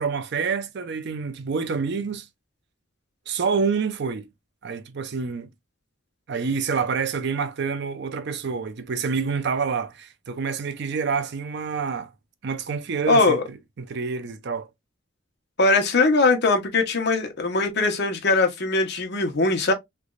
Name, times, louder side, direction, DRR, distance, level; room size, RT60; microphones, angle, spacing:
voice 1, 0.0-2.3 3.3-4.3 4.6-5.5 6.3-12.1 12.4-13.4 13.8-14.7, right 5 dB, 55° right, 0.5 m, -27 dB
voice 2, 13.1-13.4 15.6-19.7, left 3 dB, 55° left, 1.0 m, -21 dB
3.3 x 3.0 x 2.4 m
head